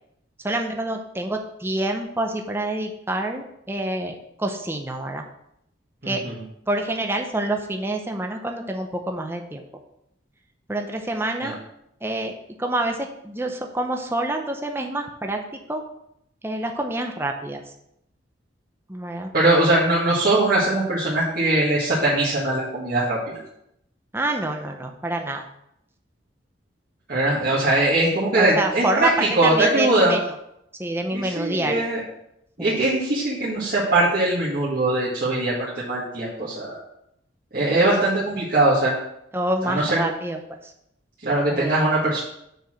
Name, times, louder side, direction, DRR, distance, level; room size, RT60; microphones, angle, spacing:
voice 1, 0.4-5.3 6.1-6.2 6.7-9.6 10.7-11.6 12.0-12.3 12.6-15.4 15.7-15.8 16.4-17.6 18.9-19.3 24.1-25.4 28.3-30.2 30.8-31.9 32.6-32.8 39.3-40.6 41.5-41.7, right 1 dB, 10° right, 3 dB, 0.6 m, -27 dB
voice 2, 6.0-6.4 11.4-11.5 19.3-23.2 27.1-29.1 29.3-30.2 31.1-32.0 32.6-36.8 37.5-38.9 39.6-40.0 41.2-42.2, right 2 dB, 50° right, -9 dB, 1.8 m, -21 dB
6.7 x 4.7 x 6.2 m, 0.78 s
head